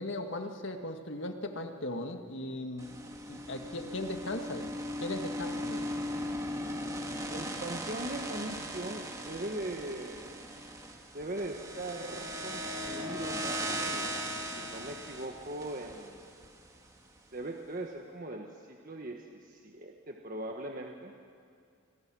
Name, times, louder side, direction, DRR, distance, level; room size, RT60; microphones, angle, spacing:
voice 1, 0.0-3.0 3.3-4.7 5.0-5.9, left 1 dB, 65° left, 5 dB, 2.0 m, -38 dB
sound 1, 2.8-17.0, equal, 15° right, 1.9 m, -38 dB
voice 2, 7.3-10.4 11.1-16.2 17.3-21.1, right 1 dB, 40° right, 2 dB, 1.5 m, -40 dB
29.0 x 26.0 x 6.3 m, 2.3 s
head